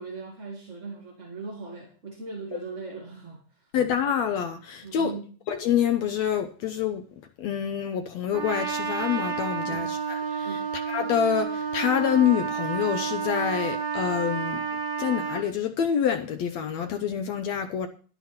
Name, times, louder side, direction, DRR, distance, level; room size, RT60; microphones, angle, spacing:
voice 1, 0.0-3.7 4.8-5.4 9.6-9.9 10.4-10.7, right 4 dB, 30° right, 1.6 m, -39 dB
voice 2, 3.7-5.2 5.5-7.0 7.4-10.5 10.9-14.6 15.0-17.9, left 8 dB, 70° left, 1.7 m, -26 dB
Trumpet, 8.3-15.5, right 6 dB, 50° right, 3.7 m, -30 dB
11.5 x 11.0 x 4.3 m
omnidirectional pair, 3.8 m